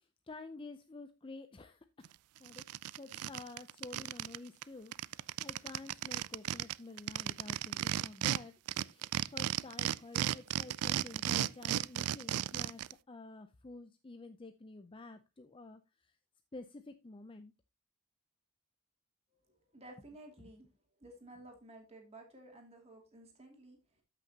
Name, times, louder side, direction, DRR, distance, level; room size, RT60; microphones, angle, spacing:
voice 1, 0.0-2.1 2.4-2.7 3.0-16.2 16.5-17.5 20.4-20.5, left 3 dB, 25° left, 8 dB, 0.5 m, -50 dB
sound 1, 2.0-2.1 2.5-4.4 4.6-4.7 4.9-8.4 8.7-12.9, right 12 dB, 90° right, 0.4 m, -34 dB
voice 2, 19.4-20.7 21.0-24.0, right 1 dB, 30° right, 1 dB, 2.5 m, -54 dB
13.5 x 6.1 x 2.8 m, 0.24 s
head